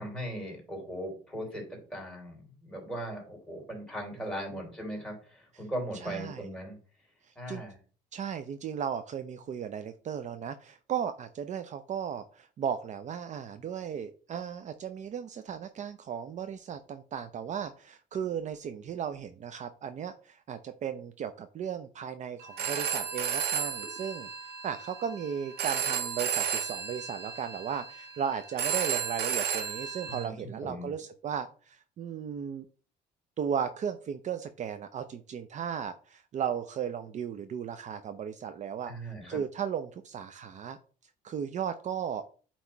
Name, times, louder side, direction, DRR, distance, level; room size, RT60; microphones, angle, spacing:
voice 1, 0.0-6.8 7.4-7.8 30.1-30.4 30.6-30.9 38.9-39.4, right 1 dB, 5° left, -2 dB, 3.6 m, -38 dB
voice 2, 6.0-6.5 7.2-7.6 8.1-32.7 33.4-38.9 39.3-40.8 41.2-42.2, right 8 dB, 45° right, 9 dB, 0.5 m, -36 dB
Telephone, 22.4-30.2, right 8 dB, 75° right, 1.4 m, -33 dB
8.2 x 3.1 x 4.5 m, 0.39 s
cardioid pair, 110°, 17 cm